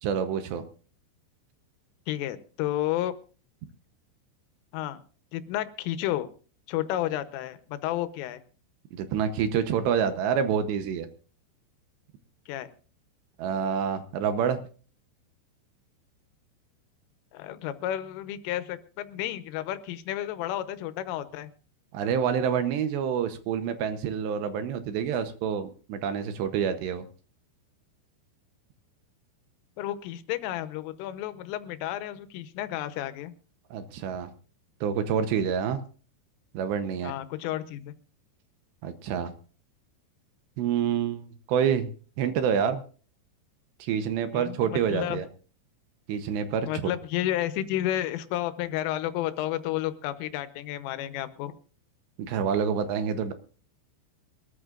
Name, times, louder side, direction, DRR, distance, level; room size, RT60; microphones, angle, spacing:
voice 1, 0.0-0.6 8.9-11.1 13.4-14.6 21.9-27.0 33.7-34.3 34.8-35.8 36.5-37.1 38.8-39.3 40.6-41.9 42.2-42.8 43.8-45.3 46.1-46.7 52.2-53.3, right 7 dB, 75° right, 9 dB, 2.8 m, -27 dB
voice 2, 2.1-3.2 4.7-5.0 5.3-6.3 6.7-8.4 12.5-12.7 17.3-21.5 29.8-33.3 37.0-37.9 44.3-45.2 46.7-51.5, left 13 dB, 85° left, 12 dB, 3.5 m, -31 dB
24.0 x 13.5 x 2.5 m, 0.40 s
omnidirectional pair, 5.6 m